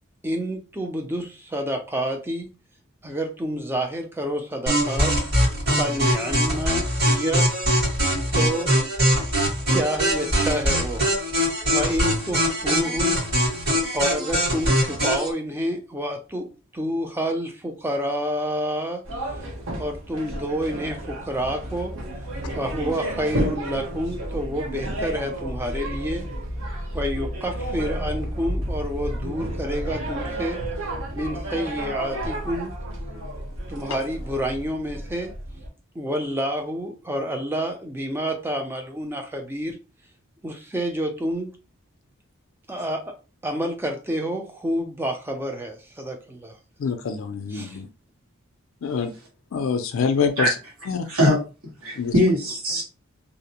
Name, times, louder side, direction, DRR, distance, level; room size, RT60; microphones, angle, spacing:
voice 1, 0.2-2.5 3.0-5.1 5.7-7.5 8.3-8.7 9.7-11.0 11.7-13.2 13.9-16.5 16.7-19.0 19.8-21.9 22.5-26.3 26.9-30.6 31.1-32.7 33.7-35.3 36.0-39.8 40.4-41.5 42.7-43.1 43.4-46.6 47.5-47.8, equal, 10° right, 3 dB, 0.4 m, -28 dB
sound 1, 4.7-15.3, equal, 50° right, 1.5 m, -22 dB
sound 2, 19.0-35.7, right 1 dB, 70° right, 0.8 m, -31 dB
voice 2, 46.8-47.9 48.8-49.1 49.5-50.5 50.9-51.1 52.0-52.1, left 6 dB, 70° left, 7 dB, 0.4 m, -25 dB
voice 3, 51.1-51.4 51.8-52.8, equal, 85° right, -3 dB, 1.3 m, -20 dB
2.5 x 2.0 x 2.8 m, 0.32 s
head